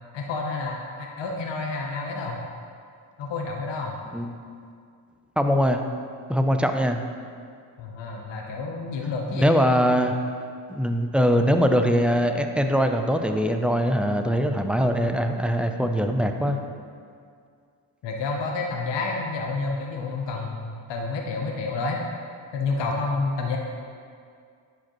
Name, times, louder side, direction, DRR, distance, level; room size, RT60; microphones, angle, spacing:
voice 1, 0.1-2.4 3.2-4.0 7.8-9.8 18.0-22.0 22.5-23.6, left 3 dB, 65° left, 1 dB, 0.9 m, -29 dB
voice 2, 5.4-5.8 6.3-7.0 9.3-10.2 10.7-16.6, equal, ahead, 5 dB, 0.4 m, -22 dB
10.5 x 5.0 x 3.0 m, 2.2 s
cardioid pair, 70°, 47 cm